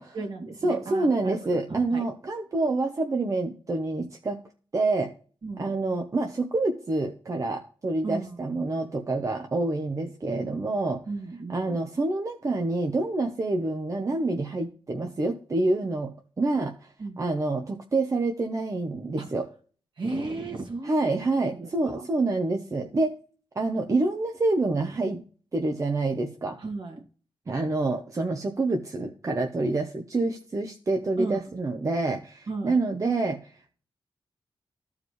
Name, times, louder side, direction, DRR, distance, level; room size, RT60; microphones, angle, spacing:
voice 1, 0.0-2.0 5.4-5.7 8.0-8.4 11.1-11.8 17.0-17.2 19.2-19.3 20.0-21.0 21.5-22.0 26.6-27.0 31.2-31.5 32.5-32.8, right 3 dB, 55° right, 2 dB, 2.2 m, -35 dB
voice 2, 0.6-4.4 4.7-5.1 5.6-11.0 11.5-16.9 17.2-19.4 20.8-23.1 23.6-25.2 25.5-26.6 27.5-33.7, right 2 dB, 35° right, 3 dB, 0.9 m, -27 dB
14.0 x 4.9 x 3.2 m, 0.41 s
wide cardioid pair, 110°, 9 cm